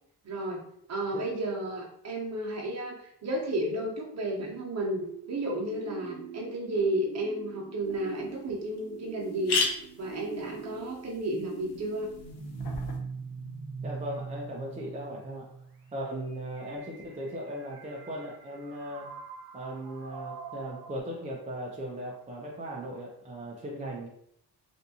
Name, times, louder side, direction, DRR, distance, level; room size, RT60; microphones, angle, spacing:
voice 1, 0.2-0.6 0.9-12.1, right 1 dB, 40° right, -2 dB, 0.9 m, -32 dB
sound 1, 4.8-21.0, right 5 dB, 65° right, 0.7 m, -43 dB
sound 2, 7.9-8.0 8.5-8.6 8.8-8.9 9.2-13.0, left 4 dB, 75° left, 0.8 m, -35 dB
voice 2, 13.8-15.5 15.9-19.1 19.5-24.1, right 1 dB, 20° right, -3 dB, 0.4 m, -38 dB
3.5 x 2.7 x 2.7 m, 0.69 s
cardioid pair, 150°, 40 cm